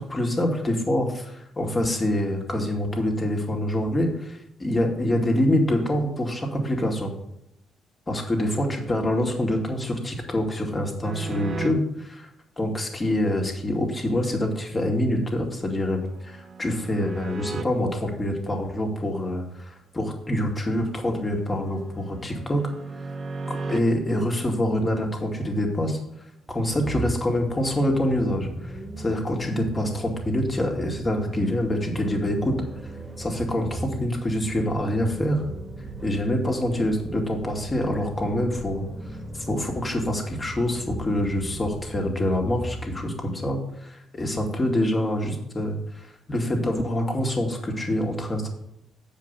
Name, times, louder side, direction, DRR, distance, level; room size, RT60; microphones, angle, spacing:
voice 1, 0.0-7.1 8.1-12.3 12.6-22.7 23.5-26.0 26.5-32.6 33.2-35.4 36.0-38.9 39.3-48.5, left 1 dB, 25° left, 1 dB, 2.1 m, -26 dB
sound 1, 11.0-11.7 15.1-17.6 20.7-23.8, right 4 dB, 50° right, 0.7 m, -36 dB
sound 2, 26.5-43.4, right 2 dB, 30° right, 1.4 m, -38 dB
7.7 x 5.1 x 6.8 m, 0.78 s
cardioid pair, 90°, 0 cm